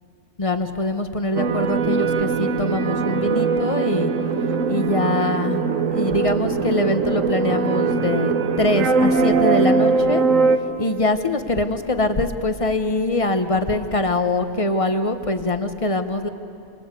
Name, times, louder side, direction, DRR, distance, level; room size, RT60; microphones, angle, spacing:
voice 1, 0.4-4.1 4.7-5.6 5.9-10.2 10.8-16.3, left 2 dB, 25° left, 8 dB, 1.1 m, -23 dB
sound 1, 1.3-10.6, right 4 dB, 65° right, 1.5 m, -21 dB
27.5 x 24.0 x 8.3 m, 2.6 s
omnidirectional pair, 1.5 m